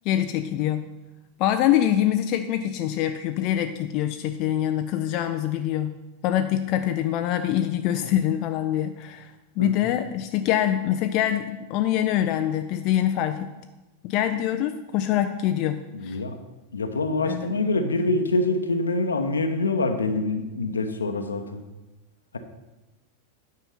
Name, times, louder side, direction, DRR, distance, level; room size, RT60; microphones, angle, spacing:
voice 1, 0.1-0.8 1.4-5.9 6.2-13.5 14.0-16.2 17.2-17.5, left 11 dB, 40° left, 7 dB, 0.5 m, -24 dB
voice 2, 15.9-16.4 16.7-21.6, left 2 dB, 75° left, 7 dB, 0.9 m, -25 dB
9.3 x 5.6 x 5.4 m, 1.1 s
figure-of-eight pair, 90°, 0 cm